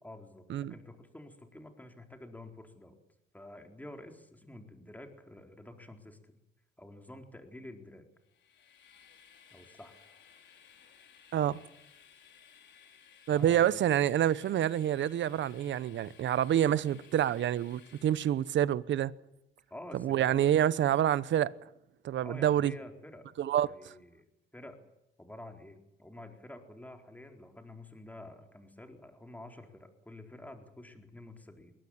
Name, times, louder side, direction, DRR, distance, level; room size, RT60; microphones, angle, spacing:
voice 1, 0.0-3.0 3.3-6.2 6.8-8.0 9.5-9.9 11.3-11.6 13.3-13.7 19.7-20.4 22.2-23.3 23.7-24.3 24.5-24.8 25.2-31.7, left 1 dB, 10° left, 4.3 m, -49 dB
Train, 8.2-18.7, left 7 dB, 70° left, 4.4 m, -59 dB
voice 2, 13.3-19.1 20.0-21.5 22.0-22.7 23.4-23.9, right 11 dB, 70° right, 1.0 m, -27 dB
22.0 x 18.5 x 8.7 m
cardioid pair, 90°, 20 cm